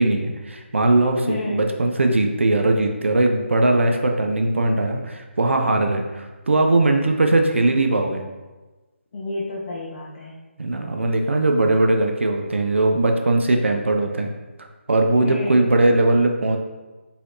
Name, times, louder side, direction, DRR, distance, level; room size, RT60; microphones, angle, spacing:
voice 1, 0.0-8.2 10.6-14.3 14.6-16.6, right 2 dB, 65° right, 3 dB, 0.5 m, -20 dB
voice 2, 1.2-1.7 9.1-10.3 15.2-15.7, left 2 dB, 30° left, -4 dB, 0.5 m, -30 dB
4.6 x 3.4 x 2.5 m, 1.2 s
figure-of-eight pair, 150°, 7 cm